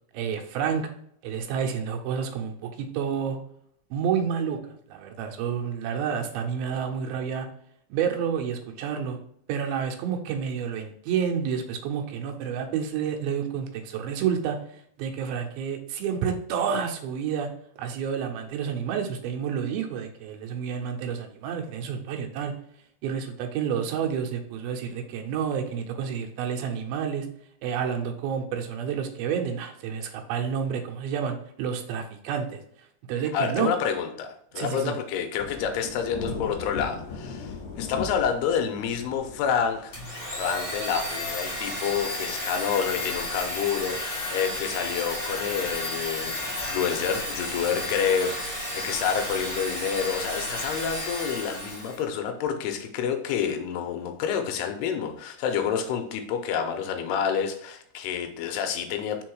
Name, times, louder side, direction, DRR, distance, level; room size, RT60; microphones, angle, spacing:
voice 1, 0.1-0.9 1.2-3.4 3.9-4.6 4.9-7.5 7.9-9.2 9.5-17.5 17.8-22.5 23.0-27.3 27.6-32.6 33.1-33.7 34.6-35.0, right 7 dB, 75° right, 3 dB, 2.5 m, -29 dB
voice 2, 33.3-40.0 40.3-59.2, left 7 dB, 85° left, 6 dB, 2.7 m, -28 dB
Thunder / Rain, 35.4-41.7, left 4 dB, 60° left, 1.9 m, -38 dB
Domestic sounds home sounds, 39.9-52.0, left 1 dB, 30° left, 2.8 m, -32 dB
5.4 x 4.2 x 4.7 m, 0.68 s
omnidirectional pair, 4.7 m